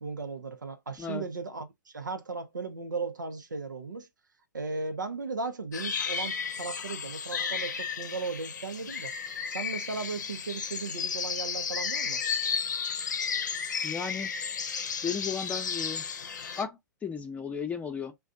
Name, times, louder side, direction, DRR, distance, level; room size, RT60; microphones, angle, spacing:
voice 1, 0.0-4.1 4.5-9.1 9.5-12.2, right 4 dB, 90° right, 0.7 m, -36 dB
sound 1, 5.7-16.6, left 6 dB, 75° left, 0.6 m, -33 dB
voice 2, 13.8-14.3 15.0-16.0 16.6-18.1, left 6 dB, 15° left, 0.7 m, -34 dB
2.5 x 2.3 x 3.6 m
hypercardioid pair, 110°, 10 cm